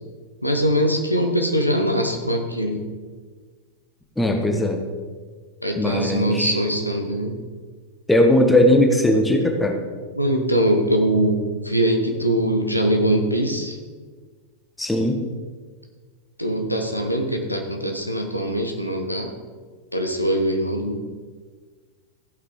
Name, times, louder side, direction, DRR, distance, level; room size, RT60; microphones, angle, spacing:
voice 1, 0.4-2.8 5.6-7.4 10.1-13.8 16.4-19.3 19.9-21.1, right 1 dB, 90° left, 3 dB, 1.0 m, -22 dB
voice 2, 4.2-4.8 5.8-6.5 8.1-9.8 14.8-15.2, left 1 dB, 5° left, 3 dB, 1.2 m, -18 dB
15.5 x 5.7 x 3.8 m, 1.5 s
figure-of-eight pair, 90°, 0 cm